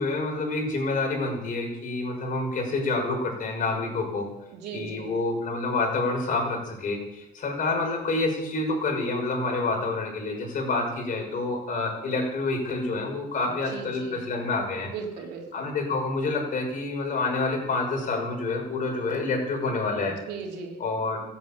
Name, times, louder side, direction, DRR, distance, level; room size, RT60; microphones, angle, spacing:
voice 1, 0.0-4.3 4.7-14.9 15.5-20.2 20.8-21.2, left 3 dB, 55° left, 1 dB, 6.0 m, -28 dB
voice 2, 4.5-5.1 13.7-14.2 14.8-15.5 20.3-20.8, right 5 dB, 80° right, 1 dB, 3.3 m, -37 dB
14.0 x 9.2 x 8.5 m, 0.90 s
cardioid pair, 110°, 17 cm